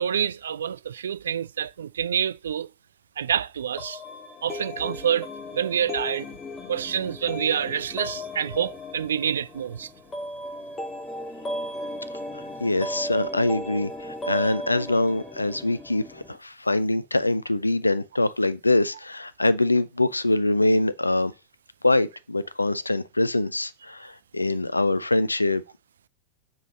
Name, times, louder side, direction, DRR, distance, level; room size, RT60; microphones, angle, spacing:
voice 1, 0.0-2.7 3.2-4.0 4.4-6.3 6.7-9.9, right 8 dB, 65° right, 0.3 m, -27 dB
sound 1, 3.8-16.4, left 1 dB, 15° left, 1.3 m, -36 dB
voice 2, 12.3-21.3 21.8-25.6, left 2 dB, 80° left, 0.4 m, -24 dB
7.4 x 3.9 x 6.2 m
figure-of-eight pair, 90°, 0 cm